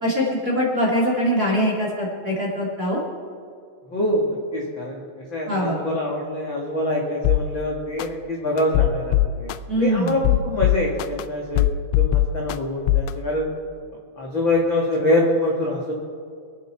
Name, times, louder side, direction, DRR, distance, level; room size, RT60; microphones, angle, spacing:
voice 1, 0.0-3.0 5.5-5.8 9.7-10.2, equal, 30° right, -3 dB, 2.1 m, -22 dB
voice 2, 3.9-13.5 14.2-16.0, left 1 dB, 50° left, -3 dB, 1.5 m, -25 dB
sound 1, 7.2-7.4 8.0-8.1 8.6-9.6 10.1-11.2 11.6-12.6 12.9-13.1, left 15 dB, 90° left, 2.8 m, -19 dB
26.0 x 9.5 x 4.5 m, 2.2 s
omnidirectional pair, 5.0 m